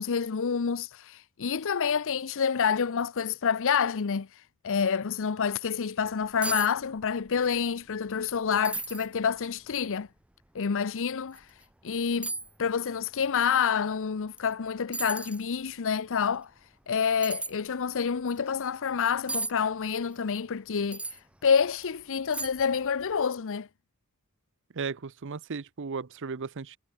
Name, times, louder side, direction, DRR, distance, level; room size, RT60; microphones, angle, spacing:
voice 1, 0.0-10.1 10.5-12.3 12.6-23.7, left 6 dB, 60° left, 0.6 m, -28 dB
sound 1, 6.1-6.2 6.4-6.7 7.0-7.5 7.9-8.0 8.6-9.1 9.7-9.8 11.3-11.4 12.2-12.5 14.4-14.5 14.9-15.4 17.2-17.5 19.3-19.5 20.9-21.2 21.8-21.9 22.3-22.7 23.0-23.2, right 2 dB, 5° right, 0.5 m, -34 dB
voice 2, 24.7-26.8, right 5 dB, 55° right, 0.7 m, -35 dB
head